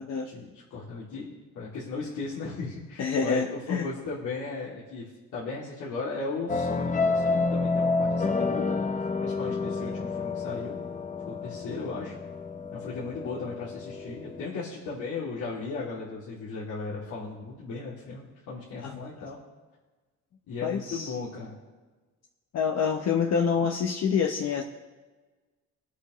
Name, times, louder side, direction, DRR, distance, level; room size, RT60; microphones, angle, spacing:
voice 1, 0.2-8.9 9.2-10.8 11.3-12.2 12.7-19.4 20.5-21.6 23.6-23.7, left 4 dB, 80° left, -8 dB, 2.7 m, -36 dB
voice 2, 3.0-3.9 18.8-19.1 20.6-21.1 22.5-24.6, left 6 dB, 60° left, 1 dB, 1.0 m, -27 dB
sound 1, 6.5-14.5, left 3 dB, 25° left, 0.7 m, -29 dB
21.0 x 8.1 x 3.1 m, 1.3 s
cardioid pair, 90°, 30 cm